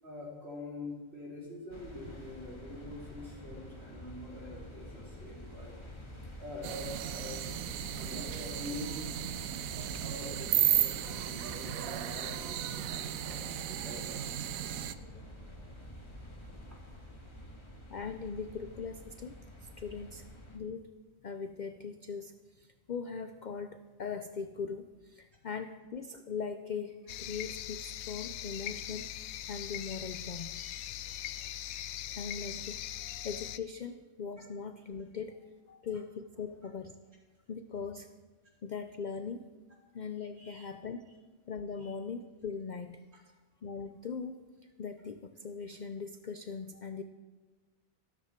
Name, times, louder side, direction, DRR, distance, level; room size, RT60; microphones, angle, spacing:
voice 1, 0.0-5.7 6.4-7.4 7.9-9.1 9.9-14.3 14.8-15.0 30.5-31.4 35.7-35.8 40.3-40.7 41.8-41.9, left 1 dB, 50° right, -5 dB, 4.6 m, -45 dB
sound 1, 1.7-20.6, equal, 20° left, 1.6 m, -48 dB
sound 2, 6.6-14.9, right 11 dB, 85° right, 1.1 m, -34 dB
voice 2, 17.9-19.3 19.6-20.3 20.5-20.9 21.2-29.2 29.5-30.6 32.1-32.8 33.2-35.4 35.8-36.9 37.5-38.1 38.6-39.5 39.9-41.0 41.5-43.0 43.6-44.5 44.8-47.0, left 5 dB, 60° left, 9 dB, 0.5 m, -40 dB
sound 3, 27.1-33.6, left 12 dB, 85° left, 1.0 m, -41 dB
13.5 x 13.0 x 4.5 m, 1.3 s
omnidirectional pair, 1.4 m